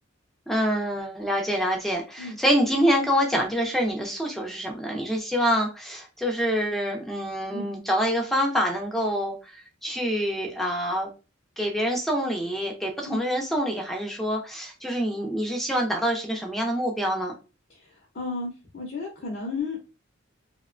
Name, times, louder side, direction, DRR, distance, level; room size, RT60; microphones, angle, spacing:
voice 1, 0.5-11.1 11.6-17.3, equal, ahead, 1 dB, 0.5 m, -26 dB
voice 2, 18.1-19.8, left 3 dB, 45° left, -2 dB, 0.6 m, -33 dB
2.7 x 2.1 x 2.5 m, 0.32 s
head